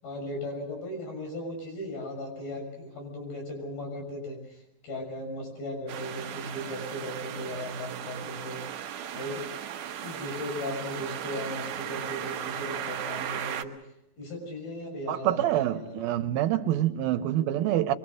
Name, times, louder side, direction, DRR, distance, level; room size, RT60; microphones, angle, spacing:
voice 1, 0.0-4.6 4.8-8.6 9.1-9.4 10.0-13.7 14.2-16.0, left 1 dB, 75° left, 8.1 m, -37 dB
sound 1, 5.9-13.6, right 9 dB, 70° right, 2.5 m, -36 dB
voice 2, 15.1-17.9, right 13 dB, 90° right, 2.9 m, -26 dB
24.5 x 23.5 x 6.4 m
omnidirectional pair, 4.1 m